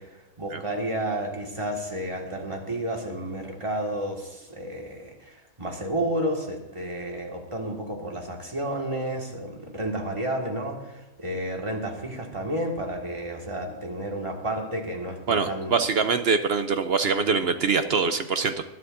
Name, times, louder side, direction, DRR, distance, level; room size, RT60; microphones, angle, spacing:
voice 1, 0.0-15.7, right 1 dB, 20° right, 0 dB, 1.9 m, -31 dB
voice 2, 15.3-18.6, right 5 dB, 55° right, 9 dB, 0.8 m, -24 dB
20.0 x 11.5 x 2.6 m, 1.0 s
omnidirectional pair, 1.5 m